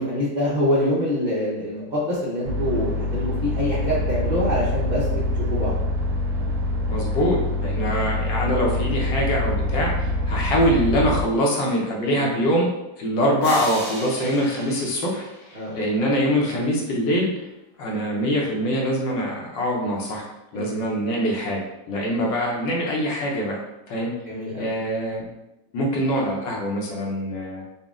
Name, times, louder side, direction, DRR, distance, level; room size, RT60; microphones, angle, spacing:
voice 1, 0.0-5.2 5.5-5.8 12.0-12.3 15.5-15.8 20.5-20.8 24.3-24.7, left 1 dB, 70° right, -7 dB, 0.4 m, -25 dB
sound 1, 2.5-11.2, left 1 dB, 90° right, 1.5 m, -25 dB
voice 2, 6.9-12.7 13.0-17.3 17.8-20.2 20.5-21.6 21.9-23.6 23.9-24.1 24.6-25.3 25.7-27.6, equal, 75° left, -2 dB, 1.5 m, -24 dB
sound 2, 13.4-16.1, right 1 dB, 35° right, 1.1 m, -36 dB
4.2 x 2.4 x 3.6 m, 0.93 s
omnidirectional pair, 2.0 m